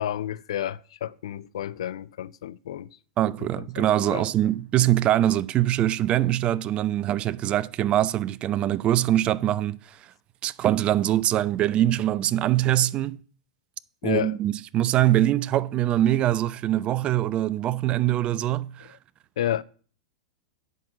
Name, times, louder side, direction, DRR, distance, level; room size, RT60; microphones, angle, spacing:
voice 1, 0.0-3.0 3.4-4.3 14.0-14.3 19.4-19.6, left 11 dB, 70° left, 0.4 m, -31 dB
voice 2, 3.2-10.0 10.4-13.2 14.0-18.9, right 13 dB, 35° right, 0.5 m, -23 dB
8.2 x 6.1 x 7.3 m
hypercardioid pair, 95°, 3 cm